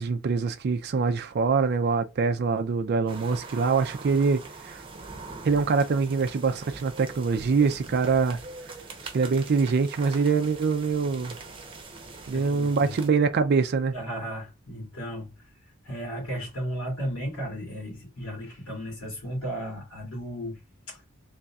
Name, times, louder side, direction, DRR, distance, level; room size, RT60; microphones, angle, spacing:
voice 1, 0.0-4.8 5.4-8.4 9.1-11.4 12.3-13.9, right 5 dB, 45° right, 0.4 m, -24 dB
sound 1, 3.1-13.1, right 3 dB, 25° right, 0.8 m, -43 dB
voice 2, 12.3-12.9 13.9-15.3 15.8-20.6 20.9-21.0, equal, 75° left, 2.5 m, -34 dB
3.9 x 3.3 x 2.3 m
head